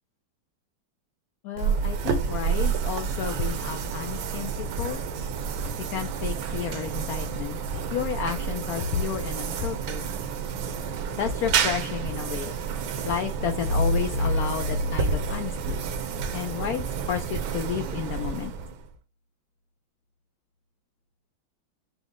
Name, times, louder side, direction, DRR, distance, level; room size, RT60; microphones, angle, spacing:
voice 1, 1.4-5.0 5.9-10.0 11.2-12.6 13.0-15.8 16.3-18.5, left 9 dB, 85° left, 7 dB, 0.8 m, -32 dB
sound 1, 1.6-19.0, right 6 dB, 75° right, 1.4 m, -30 dB
sound 2, 13.4-16.2, left 1 dB, 55° left, 1.3 m, -28 dB
6.0 x 2.1 x 3.6 m, 0.28 s
omnidirectional pair, 2.2 m